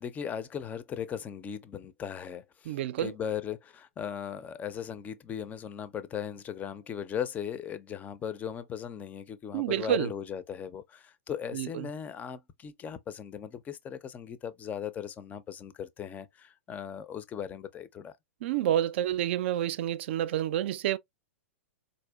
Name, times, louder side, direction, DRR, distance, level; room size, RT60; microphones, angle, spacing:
voice 1, 0.0-18.1, left 8 dB, 20° left, 0.4 m, -38 dB
voice 2, 2.7-3.1 9.5-10.1 11.5-11.8 18.4-21.0, right 11 dB, 55° right, 0.4 m, -29 dB
4.1 x 2.6 x 2.2 m
hypercardioid pair, 110°, 7 cm